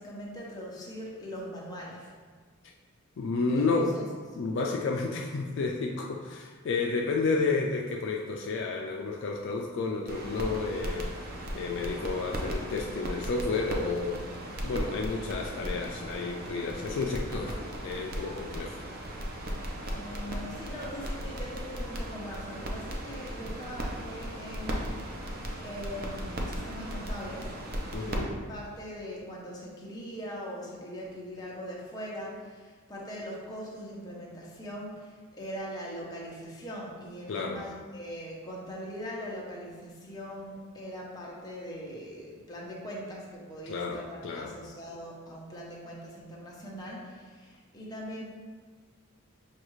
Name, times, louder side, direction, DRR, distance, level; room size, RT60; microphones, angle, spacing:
voice 1, 0.0-2.1 3.5-3.7 3.9-4.0 19.9-25.1 25.6-27.5 28.0-48.2, equal, 20° left, -4 dB, 0.7 m, -41 dB
voice 2, 3.2-4.1 4.3-11.3 11.5-14.3 14.6-18.8 27.9-28.3 37.3-37.6 43.7-44.5, left 3 dB, 55° left, 0 dB, 0.3 m, -31 dB
sound 1, 10.1-28.2, equal, 45° right, 0.5 m, -37 dB
6.5 x 2.4 x 3.0 m, 1.5 s
head